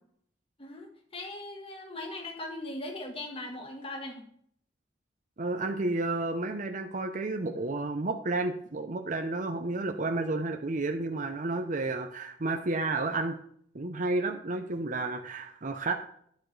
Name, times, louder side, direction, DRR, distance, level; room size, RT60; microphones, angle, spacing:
voice 1, 1.1-4.3, left 2 dB, 30° left, 3 dB, 1.5 m, -39 dB
voice 2, 5.4-13.4 13.7-15.9, right 2 dB, 45° right, 5 dB, 0.7 m, -31 dB
10.5 x 8.5 x 3.3 m, 0.63 s
head